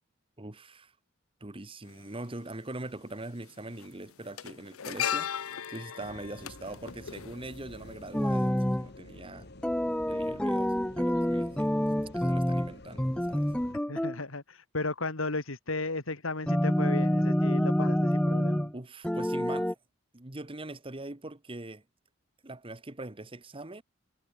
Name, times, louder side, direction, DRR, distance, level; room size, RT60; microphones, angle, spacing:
voice 1, 0.4-0.9 1.4-5.3 5.7-9.5 10.1-11.7 12.1-13.5 18.7-19.8 20.1-21.8 22.4-23.8, right 2 dB, 25° right, 1.3 m, -42 dB
sound 1, 1.9-2.0 3.2-3.4 3.7-8.0 8.3-8.5, left 9 dB, 90° left, 0.8 m, -36 dB
sound 2, 6.0-13.7, left 2 dB, 50° left, 2.1 m, -49 dB
sound 3, 8.1-8.9 9.6-12.7 13.0-14.2 16.5-18.7 19.0-19.7, equal, 5° left, 0.6 m, -27 dB
voice 2, 13.9-18.7, left 3 dB, 75° left, 2.3 m, -35 dB
head